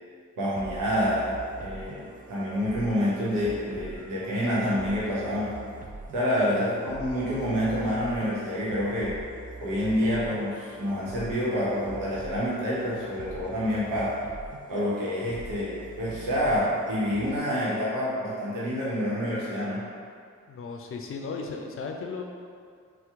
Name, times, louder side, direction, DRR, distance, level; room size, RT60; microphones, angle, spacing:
voice 1, 0.4-5.5 6.1-9.2 9.6-14.1 14.7-19.8, equal, 85° right, -8 dB, 0.9 m, -27 dB
sound 1, 0.6-17.4, right 3 dB, 30° right, 0.4 m, -44 dB
voice 2, 6.6-6.9 20.5-22.2, left 4 dB, 45° left, 2 dB, 0.5 m, -36 dB
2.8 x 2.2 x 3.5 m, 2.1 s
supercardioid pair, 45°, 31 cm